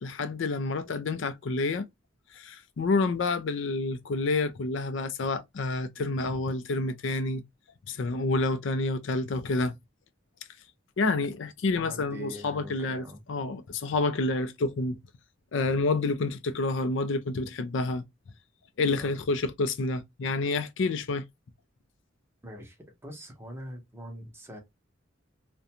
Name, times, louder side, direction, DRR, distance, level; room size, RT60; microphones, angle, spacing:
voice 1, 0.0-1.9 2.3-7.4 7.9-9.7 11.0-15.0 15.5-18.0 18.8-21.2, left 3 dB, 75° left, 0.4 m, -28 dB
voice 2, 11.7-13.2 18.9-19.2 22.4-22.8 23.0-24.6, equal, 15° right, 0.7 m, -43 dB
2.5 x 2.2 x 2.7 m
head